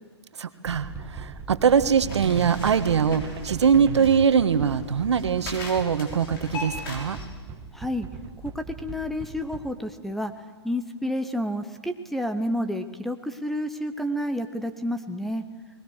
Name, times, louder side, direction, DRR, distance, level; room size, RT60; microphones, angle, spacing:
voice 1, 0.4-7.2, right 7 dB, 75° right, 11 dB, 1.6 m, -22 dB
sound 1, 0.7-9.7, right 5 dB, 20° right, 1.6 m, -40 dB
sound 2, 2.0-4.4, right 10 dB, 60° right, 0.7 m, -35 dB
sound 3, 2.1-7.3, left 3 dB, 50° left, 6.2 m, -40 dB
voice 2, 7.7-8.1 8.4-10.3 10.6-15.4, equal, ahead, 9 dB, 0.9 m, -30 dB
29.0 x 21.0 x 6.5 m, 1.4 s
hypercardioid pair, 140°, 15 cm